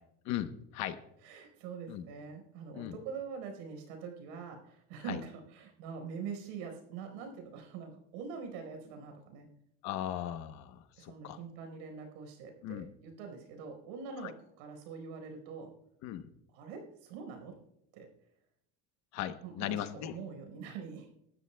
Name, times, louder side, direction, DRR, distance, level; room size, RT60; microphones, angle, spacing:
voice 1, 0.2-1.0 1.9-2.0 2.7-3.0 5.1-5.2 9.8-11.4 12.6-12.9 14.2-14.3 16.0-16.3 19.1-20.2, left 12 dB, 55° left, 10 dB, 1.0 m, -38 dB
voice 2, 1.2-9.5 11.0-15.7 16.5-17.5 17.9-18.1 19.4-21.1, right 5 dB, 90° right, 4 dB, 4.6 m, -44 dB
20.5 x 12.5 x 2.3 m, 0.77 s
cardioid pair, 150°, 33 cm